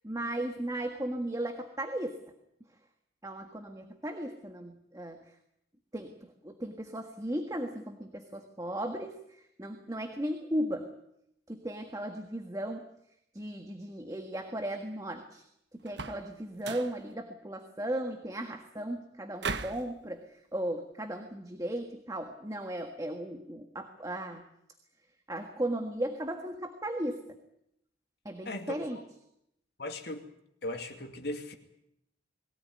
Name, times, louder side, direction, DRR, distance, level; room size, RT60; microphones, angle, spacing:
voice 1, 0.0-2.2 3.2-5.3 5.9-6.1 6.4-10.9 11.5-12.8 13.3-15.4 15.8-24.4 25.3-27.4 28.2-29.0, right 1 dB, 20° right, 5 dB, 1.6 m, -36 dB
sound 1, 15.9-16.3 16.6-17.0 19.4-19.9, right 4 dB, 70° right, 1.2 m, -36 dB
voice 2, 28.5-29.0 29.8-30.3 30.6-31.5, left 1 dB, 60° left, 5 dB, 2.4 m, -38 dB
22.5 x 17.5 x 9.6 m, 0.79 s
head